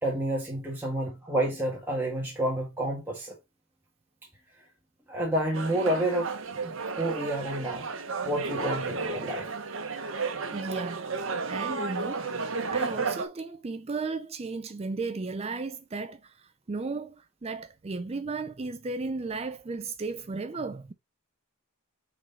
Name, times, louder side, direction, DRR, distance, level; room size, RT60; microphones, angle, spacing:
voice 1, 0.0-3.3 5.1-6.3 6.6-7.9 8.2-9.5, right 1 dB, 10° right, 1.4 m, -29 dB
sound 1, 5.5-13.3, right 4 dB, 60° right, 1.0 m, -33 dB
voice 2, 10.5-11.1 11.5-12.3 12.7-20.9, right 3 dB, 25° right, 0.4 m, -35 dB
6.2 x 3.9 x 4.1 m
head